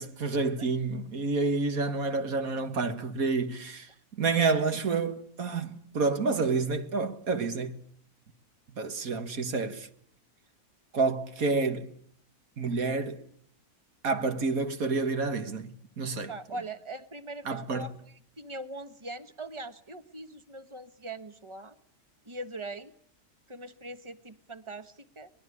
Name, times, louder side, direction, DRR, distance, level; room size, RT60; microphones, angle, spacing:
voice 1, 0.0-3.9 4.2-7.8 8.8-9.9 10.9-11.9 12.6-13.2 14.0-16.3 17.5-17.9, right 4 dB, 65° right, 2.0 m, -29 dB
voice 2, 16.3-17.9 18.4-21.7 22.2-22.9 23.5-25.3, right 2 dB, 20° right, 1.2 m, -41 dB
23.5 x 21.5 x 9.8 m
omnidirectional pair, 1.6 m